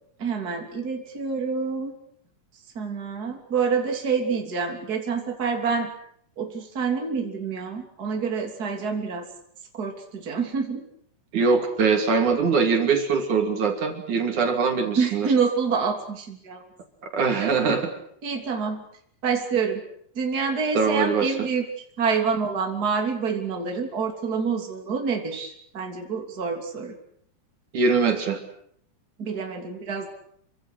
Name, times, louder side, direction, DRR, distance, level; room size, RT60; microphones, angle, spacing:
voice 1, 0.2-2.0 2.7-5.9 6.4-9.3 9.7-10.8 15.0-16.6 17.4-17.5 18.2-18.8 19.2-19.8 20.1-21.7 22.0-26.9 29.2-30.1, right 5 dB, 30° right, 2 dB, 3.3 m, -27 dB
voice 2, 11.3-15.3 17.0-17.9 20.7-21.3 27.7-28.4, right 5 dB, 65° right, 4 dB, 4.2 m, -22 dB
28.0 x 24.5 x 6.5 m, 0.67 s
omnidirectional pair, 3.8 m